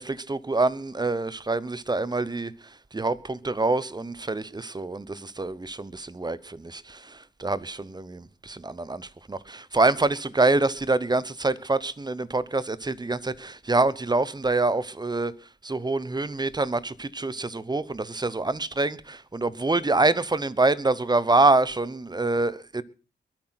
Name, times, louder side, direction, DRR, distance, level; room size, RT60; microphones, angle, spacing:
voice 1, 0.0-2.5 2.9-15.3 15.6-22.8, right 3 dB, 20° right, 1.0 m, -26 dB
22.0 x 9.0 x 6.0 m
cardioid pair, 90°, 19 cm